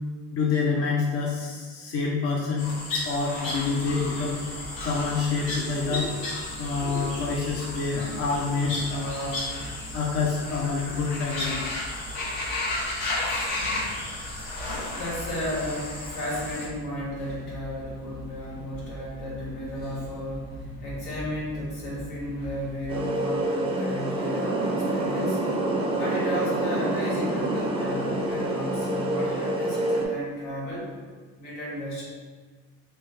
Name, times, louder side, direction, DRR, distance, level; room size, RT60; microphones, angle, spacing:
voice 1, 0.3-2.7 3.0-4.4 4.8-6.1 6.6-9.4 9.9-11.8, left 4 dB, 45° left, -4 dB, 0.6 m, -27 dB
sound 1, 2.6-16.7, left 2 dB, 70° left, 1.1 m, -33 dB
sound 2, 3.4-23.1, equal, 30° left, 1.0 m, -43 dB
voice 2, 14.9-25.4 25.9-30.9 31.4-32.0, equal, 85° left, -6 dB, 1.4 m, -34 dB
sound 3, 22.9-30.1, right 1 dB, 15° right, 0.4 m, -27 dB
3.1 x 2.1 x 3.3 m, 1.4 s
cardioid pair, 115°, 34 cm